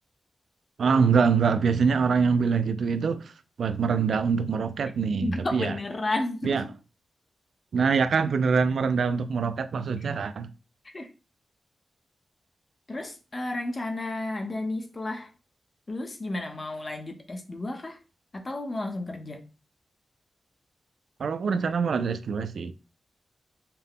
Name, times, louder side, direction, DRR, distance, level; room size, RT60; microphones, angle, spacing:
voice 1, 0.8-3.3 3.6-5.7 6.4-6.6 7.7-10.5 21.2-22.7, right 5 dB, 80° right, 0.3 m, -24 dB
voice 2, 5.2-6.7 10.9-11.1 12.9-15.3 15.9-18.0 18.3-19.4, left 2 dB, 30° left, 0.7 m, -32 dB
5.6 x 2.1 x 3.6 m
wide cardioid pair, 145°, 0 cm